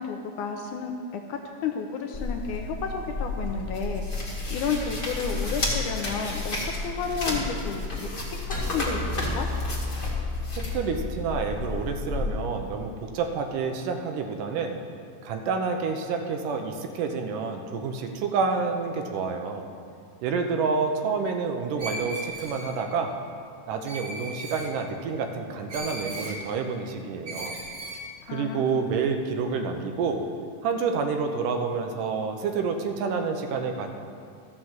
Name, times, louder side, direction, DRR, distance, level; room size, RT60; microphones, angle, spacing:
voice 1, 0.0-4.2 4.5-9.5 28.2-29.0, left 6 dB, 80° left, 4 dB, 2.0 m, -32 dB
sound 1, 2.1-12.3, left 2 dB, 25° left, 1.3 m, -31 dB
sound 2, 8.5-12.9, left 2 dB, 5° left, 1.0 m, -36 dB
voice 2, 10.7-14.8 15.2-19.7 20.2-23.1 23.7-27.6 28.3-30.2 30.6-33.9, right 5 dB, 75° right, 4 dB, 2.3 m, -28 dB
Screech, 21.8-22.8 23.9-24.7 25.7-26.4 27.2-28.0, right 1 dB, 40° right, 2.1 m, -37 dB
13.5 x 6.3 x 7.3 m, 2.3 s
omnidirectional pair, 4.0 m